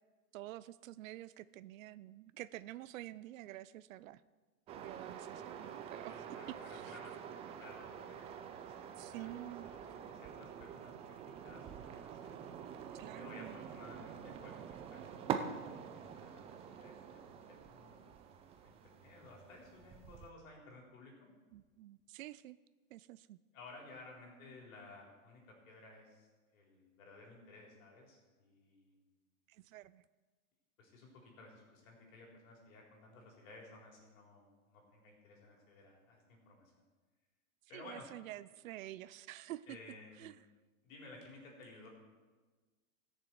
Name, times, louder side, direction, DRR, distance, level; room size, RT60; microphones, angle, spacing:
voice 1, 0.3-4.2 4.8-6.1 6.7-6.9 9.0-9.7 12.9-13.6 21.5-22.6 22.9-23.4 29.5-30.0 37.7-39.8 40.2-40.4, right 15 dB, 65° right, 16 dB, 0.6 m, -49 dB
sound 1, 4.7-20.3, right 8 dB, 15° right, 0.4 m, -46 dB
voice 2, 6.1-12.3 12.9-21.3 23.5-26.3 26.5-29.0 30.8-36.7 37.7-38.1 39.7-40.3 40.8-41.9, left 2 dB, 65° left, -1 dB, 4.2 m, -56 dB
19.5 x 6.8 x 4.6 m, 1.3 s
hypercardioid pair, 125°, 43 cm